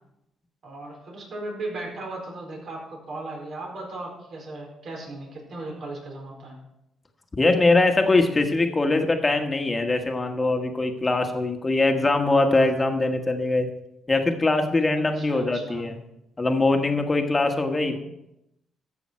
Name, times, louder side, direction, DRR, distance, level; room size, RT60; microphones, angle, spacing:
voice 1, 0.6-6.6 15.0-15.9 17.8-18.0, right 2 dB, 60° right, -1 dB, 4.4 m, -37 dB
voice 2, 7.3-13.7 14.1-16.0 16.4-18.0, left 2 dB, 25° left, 5 dB, 1.4 m, -22 dB
13.5 x 7.1 x 4.5 m, 0.84 s
cardioid pair, 90°, 0 cm